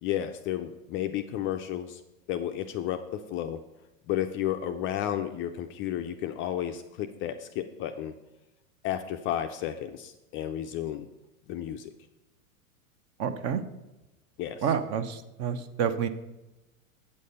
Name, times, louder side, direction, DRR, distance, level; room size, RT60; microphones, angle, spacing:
voice 1, 0.0-2.0 2.3-3.6 4.1-8.1 8.8-11.1 11.5-11.9 14.4-14.7, left 11 dB, 30° left, 7 dB, 0.4 m, -32 dB
voice 2, 13.2-13.6 14.6-16.1, right 7 dB, 40° right, 11 dB, 0.8 m, -29 dB
8.6 x 6.5 x 5.5 m, 1.0 s
hypercardioid pair, 115°, 42 cm